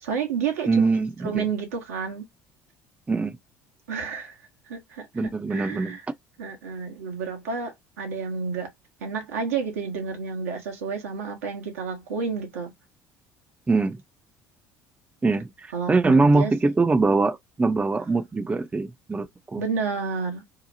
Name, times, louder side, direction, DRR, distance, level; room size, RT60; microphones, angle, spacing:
voice 1, 0.0-0.8 1.2-2.3 3.9-4.3 4.7-6.0 6.4-8.7 9.0-12.7 15.7-16.5 19.6-20.4, right 5 dB, 85° right, 0.9 m, -30 dB
voice 2, 0.7-1.4 3.1-3.4 5.1-6.0 13.7-14.0 15.2-19.6, right 3 dB, 15° right, 0.4 m, -23 dB
2.8 x 2.0 x 2.6 m
hypercardioid pair, 60°, 8 cm